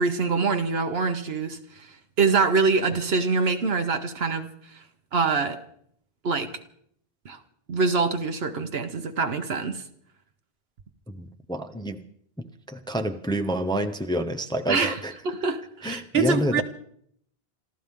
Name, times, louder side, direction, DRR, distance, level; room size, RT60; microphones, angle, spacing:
voice 1, 0.0-1.9 2.2-4.8 5.1-5.6 6.2-6.6 7.2-7.4 7.7-9.8 14.7-15.0 15.2-16.6, right 4 dB, 75° right, 1.2 m, -25 dB
voice 2, 11.1-12.0 12.4-15.1 15.8-16.6, right 1 dB, 5° left, 0.7 m, -28 dB
26.5 x 14.5 x 3.7 m
omnidirectional pair, 1.0 m